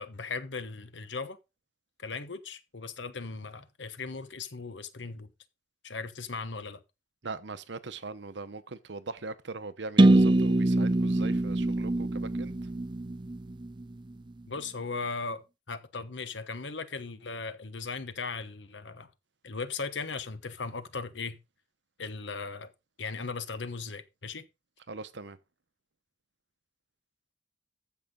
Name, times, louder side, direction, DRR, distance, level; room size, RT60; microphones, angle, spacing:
voice 1, 0.0-1.4 2.0-5.3 5.8-6.8 14.5-19.1 19.4-21.4 22.0-22.7 23.0-24.5, left 4 dB, 80° left, 1.1 m, -38 dB
voice 2, 7.2-12.5 24.9-25.4, right 3 dB, 75° right, 0.9 m, -40 dB
sound 1, 10.0-13.8, right 2 dB, 25° right, 0.5 m, -24 dB
14.0 x 5.8 x 3.8 m
head